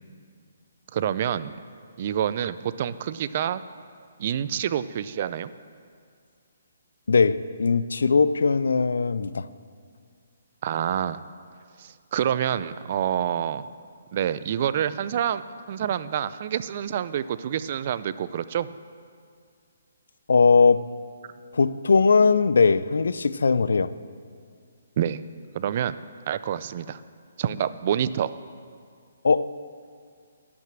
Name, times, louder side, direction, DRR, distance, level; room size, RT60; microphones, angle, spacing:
voice 1, 0.9-1.5 2.0-3.6 4.2-5.5 10.6-11.2 11.8-13.7 14.1-15.4 15.7-18.7 25.0-25.2 25.5-26.0 26.3-27.0 27.4-28.3, right 9 dB, 40° right, 15 dB, 0.4 m, -27 dB
voice 2, 7.1-9.5 20.3-20.9 21.5-23.9 29.2-29.6, left 4 dB, 80° left, 15 dB, 0.4 m, -20 dB
11.5 x 6.1 x 7.6 m, 2.2 s
hypercardioid pair, 155°, 0 cm